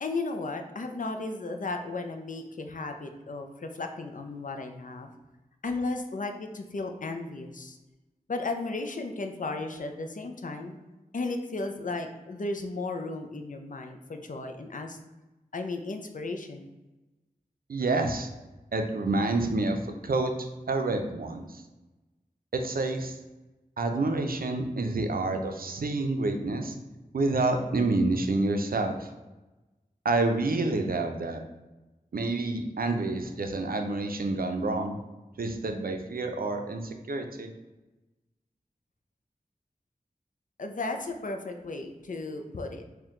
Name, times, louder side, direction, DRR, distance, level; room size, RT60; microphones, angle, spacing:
voice 1, 0.0-5.1 5.6-7.8 8.3-10.8 11.1-15.0 15.5-16.7 40.6-42.8, left 3 dB, 60° left, 5 dB, 0.5 m, -35 dB
voice 2, 17.7-18.3 18.7-20.3 20.7-21.6 22.5-23.2 23.8-26.7 27.1-29.1 30.0-31.4 32.1-35.0 35.4-37.5, right 2 dB, 70° right, 5 dB, 0.5 m, -28 dB
4.3 x 2.2 x 3.6 m, 1.1 s
wide cardioid pair, 55°, 16 cm